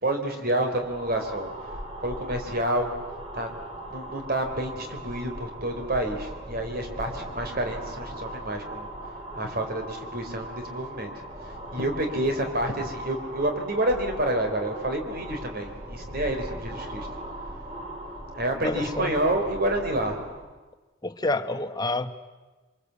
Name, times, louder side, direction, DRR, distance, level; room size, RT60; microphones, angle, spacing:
voice 1, 0.0-2.9 3.3-3.5 3.9-8.9 9.3-11.1 11.7-17.1 18.4-20.2, right 1 dB, 50° right, 5 dB, 4.0 m, -29 dB
sound 1, 0.6-20.5, right 1 dB, 30° right, 3.9 m, -39 dB
voice 2, 18.6-19.1 21.0-22.1, left 2 dB, 20° left, 8 dB, 1.2 m, -28 dB
27.5 x 24.5 x 8.4 m, 1.3 s
head